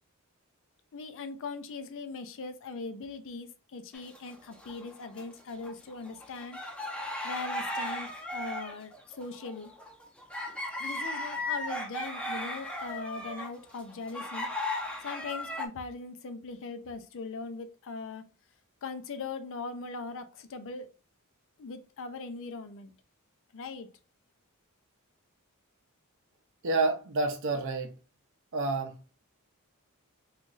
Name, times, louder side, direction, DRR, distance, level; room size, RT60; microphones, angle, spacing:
voice 1, 0.9-6.6 7.2-9.7 10.8-14.5 15.0-18.2 18.8-20.9 21.6-22.9 23.5-23.9, left 4 dB, 60° left, 0.5 m, -40 dB
sound 1, 3.9-5.3 5.6-15.7, left 1 dB, 5° left, 0.5 m, -36 dB
voice 2, 26.6-27.9 28.5-28.9, right 3 dB, 60° right, 0.6 m, -28 dB
3.0 x 2.4 x 3.8 m
head